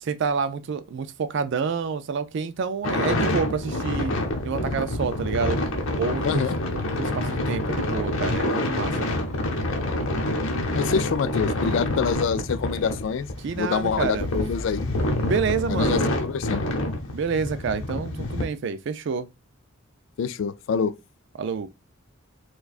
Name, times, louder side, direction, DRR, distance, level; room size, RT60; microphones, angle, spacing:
voice 1, 0.0-5.6 6.0-6.4 6.7-9.1 13.4-14.3 15.2-16.1 17.1-19.3 21.4-21.7, right 5 dB, 55° right, 0.3 m, -28 dB
sound 1, 2.8-18.4, left 1 dB, 85° left, 0.9 m, -27 dB
voice 2, 6.2-6.5 10.7-13.3 13.6-14.9 15.7-16.7 20.2-20.9, left 6 dB, 60° left, 0.3 m, -26 dB
4.5 x 2.3 x 2.4 m
head